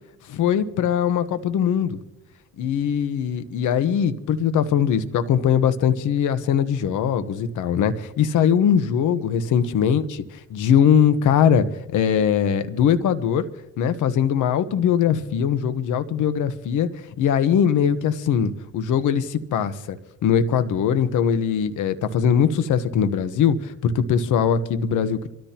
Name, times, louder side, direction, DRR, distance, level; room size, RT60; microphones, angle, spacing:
voice 1, 0.3-2.0 2.6-13.5 13.8-25.3, left 8 dB, 85° left, 12 dB, 1.1 m, -21 dB
27.0 x 13.5 x 2.9 m, 0.82 s
cardioid pair, 90°, 30 cm